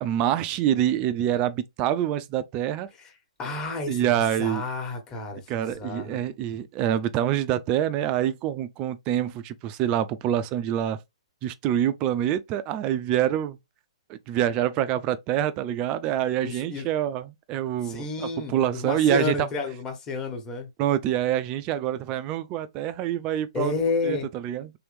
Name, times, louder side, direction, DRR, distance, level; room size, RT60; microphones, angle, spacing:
voice 1, 0.0-2.9 3.9-4.7 5.5-11.0 11.4-13.6 14.1-19.5 20.8-23.7 24.0-24.7, right 11 dB, 30° right, 0.4 m, -26 dB
voice 2, 3.4-6.2 16.4-16.9 17.8-20.7 23.5-24.3, left 3 dB, 20° left, 1.3 m, -30 dB
3.4 x 3.0 x 3.3 m
hypercardioid pair, 130°, 3 cm